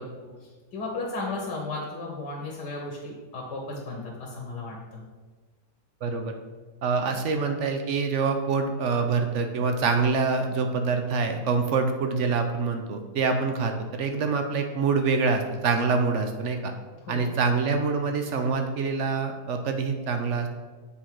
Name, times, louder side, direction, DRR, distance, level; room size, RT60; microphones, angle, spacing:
voice 1, 0.0-5.0 17.0-17.3, left 2 dB, 80° left, -2 dB, 1.7 m, -35 dB
voice 2, 6.0-6.3 6.8-16.7 17.1-20.5, right 4 dB, 60° right, 6 dB, 0.8 m, -25 dB
7.1 x 4.4 x 4.6 m, 1.3 s
omnidirectional pair, 1.8 m